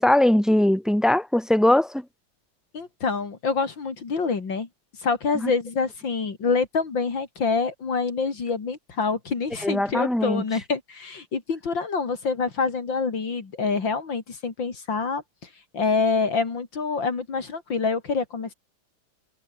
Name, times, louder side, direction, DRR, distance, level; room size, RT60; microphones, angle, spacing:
voice 1, 0.0-2.0 5.4-5.5 9.6-10.4, left 1 dB, ahead, 3.8 m, -20 dB
voice 2, 2.7-4.7 5.0-15.2 15.7-18.5, left 4 dB, 65° left, 3.5 m, -26 dB
omnidirectional pair, 2.2 m